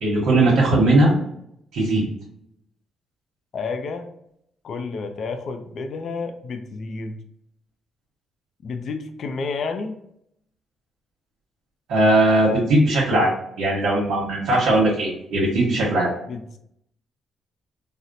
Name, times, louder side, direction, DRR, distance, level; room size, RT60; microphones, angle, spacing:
voice 1, 0.0-1.1 1.7-2.0 11.9-13.3 13.6-16.1, right 2 dB, 80° right, -6 dB, 1.0 m, -19 dB
voice 2, 3.5-4.1 4.6-7.2 8.6-10.0 16.3-16.6, left 4 dB, 60° left, 7 dB, 0.4 m, -30 dB
4.1 x 2.0 x 2.6 m, 0.74 s
cardioid pair, 90°, 0 cm